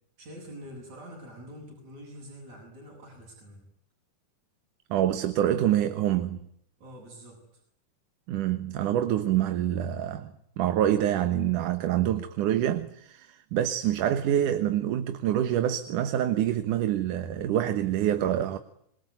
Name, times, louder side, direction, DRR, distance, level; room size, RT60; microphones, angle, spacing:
voice 1, 0.2-3.7 6.8-7.6, equal, 65° right, 8.7 m, -46 dB
voice 2, 4.9-6.4 8.3-18.6, right 11 dB, 85° right, 2.8 m, -26 dB
27.5 x 22.5 x 9.5 m
omnidirectional pair, 3.5 m